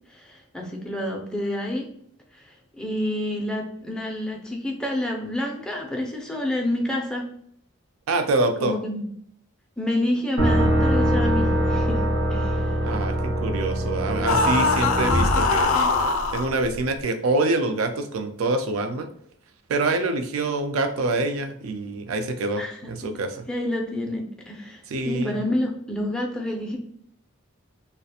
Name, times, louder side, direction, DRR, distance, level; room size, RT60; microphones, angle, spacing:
voice 1, 0.1-1.9 2.3-7.2 8.6-9.0 9.8-12.0 12.3-12.8 22.6-22.9 23.5-26.8, left 1 dB, 5° left, 0 dB, 0.3 m, -28 dB
voice 2, 8.1-8.7 12.8-15.7 16.3-19.1 19.7-23.5 24.9-25.4, right 2 dB, 85° right, 7 dB, 0.4 m, -25 dB
sound 1, 10.4-16.3, right 1 dB, 60° right, 0.7 m, -23 dB
sound 2, 14.3-16.5, left 3 dB, 85° left, 0.3 m, -22 dB
2.3 x 2.1 x 2.7 m, 0.66 s
head